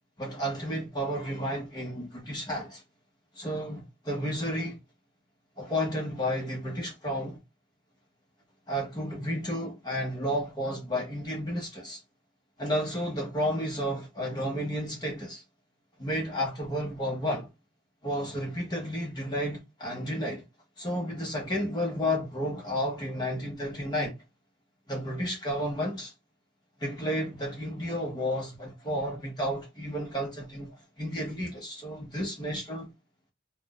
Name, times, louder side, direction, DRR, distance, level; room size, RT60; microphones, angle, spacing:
voice 1, 0.2-2.8 3.4-4.8 5.6-7.4 8.7-12.0 12.6-15.4 16.0-17.5 18.0-20.4 20.8-24.1 24.9-26.1 26.8-32.9, equal, 25° left, 0.8 m, -32 dB
2.4 x 2.2 x 3.8 m
head